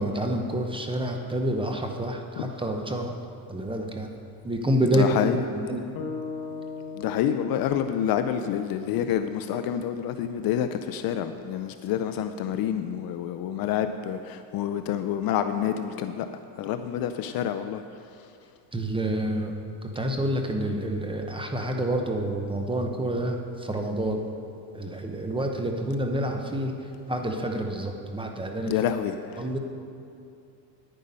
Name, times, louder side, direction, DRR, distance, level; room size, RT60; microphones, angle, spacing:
voice 1, 0.0-3.1 3.5-4.1 4.4-5.8 18.7-19.5 19.8-24.3 24.7-26.7 27.1-28.8 29.4-29.6, right 1 dB, 10° right, 3 dB, 0.7 m, -28 dB
voice 2, 4.9-5.4 6.9-16.3 16.6-17.8 28.7-29.6, left 9 dB, 45° left, 9 dB, 0.5 m, -28 dB
sound 1, 5.9-10.2, left 5 dB, 65° left, 1.2 m, -39 dB
10.0 x 9.2 x 5.4 m, 2.5 s
cardioid pair, 135°, 49 cm